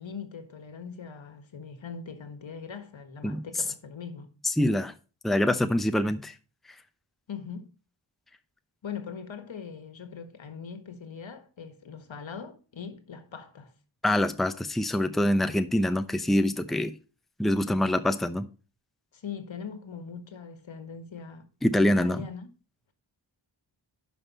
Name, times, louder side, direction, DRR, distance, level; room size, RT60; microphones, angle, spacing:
voice 1, 0.0-4.3 7.3-7.7 8.8-13.7 19.1-21.5 21.8-22.5, left 6 dB, 75° left, 1.6 m, -41 dB
voice 2, 4.4-4.9 5.2-6.3 14.0-17.0 17.4-18.5 21.6-22.2, left 1 dB, ahead, 0.7 m, -25 dB
11.0 x 5.6 x 4.1 m
cardioid pair, 60°, 47 cm